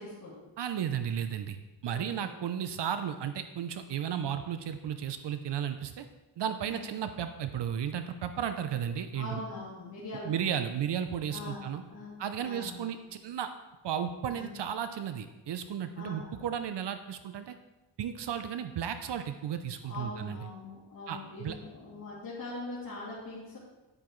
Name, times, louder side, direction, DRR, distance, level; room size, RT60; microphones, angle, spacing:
voice 1, 0.0-0.4 1.9-2.3 6.6-6.8 9.1-10.3 11.3-12.1 12.4-12.9 14.3-14.5 15.9-16.5 19.8-23.6, left 2 dB, 45° left, -10 dB, 2.8 m, -42 dB
voice 2, 0.6-1.6 1.8-6.0 6.4-9.4 10.2-11.8 12.2-13.5 13.8-17.5 18.0-20.4 21.1-21.6, right 8 dB, 65° right, 9 dB, 0.7 m, -34 dB
10.5 x 8.7 x 3.1 m, 1.1 s
wide cardioid pair, 140°, 44 cm